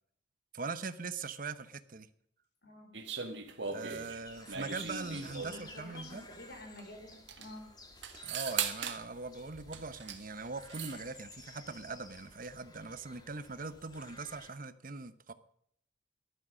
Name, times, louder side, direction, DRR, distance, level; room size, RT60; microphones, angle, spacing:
voice 1, 0.5-2.1 3.7-6.2 8.2-15.3, right 4 dB, 45° right, 12 dB, 0.9 m, -41 dB
voice 2, 2.6-3.0 5.4-7.7, left 1 dB, 55° left, 3 dB, 3.9 m, -50 dB
sound 1, 2.9-5.7 6.8-6.9 7.1-7.5 8.0-9.0 9.7-10.2 10.5-11.0, right 7 dB, 70° right, 1.7 m, -39 dB
sound 2, 4.2-14.5, left 2 dB, 20° left, 1.8 m, -53 dB
15.0 x 11.5 x 6.3 m, 0.67 s
head